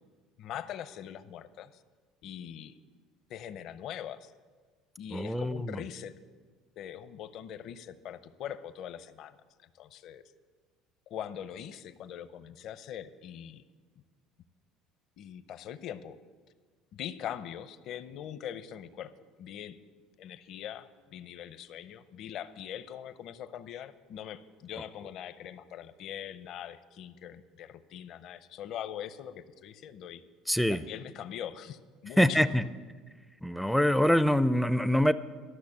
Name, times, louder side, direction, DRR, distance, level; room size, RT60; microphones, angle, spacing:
voice 1, 0.4-1.8 2.2-2.7 3.3-4.3 5.0-6.1 6.8-10.2 11.1-13.6 15.2-16.2 16.9-19.1 19.4-19.8 20.2-30.2 30.7-32.4, left 10 dB, 55° left, 13 dB, 0.6 m, -42 dB
voice 2, 5.1-5.8 30.5-30.9 32.2-32.6 33.4-35.1, equal, ahead, 14 dB, 0.4 m, -25 dB
13.0 x 6.2 x 8.6 m, 1.5 s
cardioid pair, 115°, 0 cm